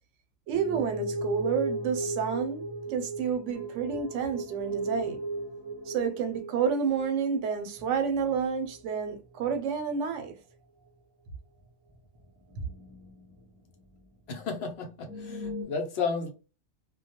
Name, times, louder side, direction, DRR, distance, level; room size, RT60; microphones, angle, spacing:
sound 1, 0.5-9.0 9.3-9.9 10.2-10.3 10.8-10.9 11.9-14.1 14.4-14.5 14.7-15.6, right 2 dB, 25° right, 0.3 m, -37 dB
voice 1, 0.5-2.6 2.9-5.2 5.9-10.4, right 6 dB, 85° right, 0.9 m, -29 dB
voice 2, 14.3-16.3, left 5 dB, 65° left, 0.8 m, -33 dB
2.2 x 2.1 x 2.8 m
omnidirectional pair, 1.2 m